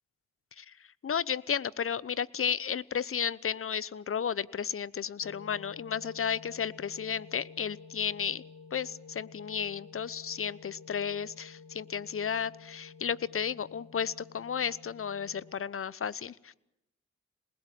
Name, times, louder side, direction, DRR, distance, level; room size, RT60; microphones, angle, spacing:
voice 1, 1.0-8.4 8.7-16.5, left 7 dB, 45° left, 21 dB, 0.9 m, -33 dB
sound 1, 5.2-15.5, left 5 dB, 75° left, 2.0 m, -51 dB
28.0 x 20.0 x 9.2 m, 0.89 s
supercardioid pair, 40°, 31 cm